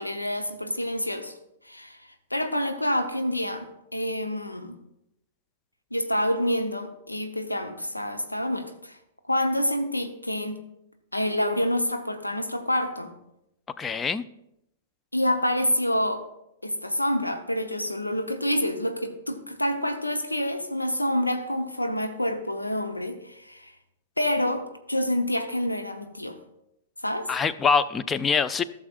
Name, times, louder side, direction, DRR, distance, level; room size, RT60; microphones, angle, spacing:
voice 1, 0.0-1.3 1.6-4.7 5.9-9.0 9.3-10.6 11.1-13.1 15.1-16.2 16.6-23.7 24.2-26.4 27.0-27.3, left 1 dB, 85° left, 7 dB, 0.9 m, -27 dB
voice 2, 13.8-14.2 27.3-28.6, left 5 dB, 15° left, 14 dB, 0.4 m, -24 dB
15.5 x 6.4 x 2.4 m, 0.83 s
figure-of-eight pair, 105°, 0 cm